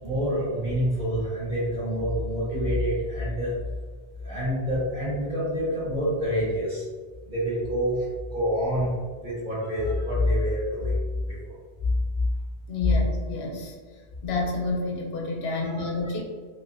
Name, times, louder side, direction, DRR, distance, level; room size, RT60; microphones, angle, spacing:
voice 1, 0.0-3.5 4.2-6.8 7.2-8.9 9.2-11.0 11.3-11.6 15.6-16.1, equal, 50° right, -9 dB, 1.3 m, -27 dB
voice 2, 12.7-13.7 14.2-16.2, left 3 dB, 90° left, -1 dB, 0.9 m, -29 dB
2.7 x 2.1 x 2.4 m, 1.5 s
omnidirectional pair, 1.1 m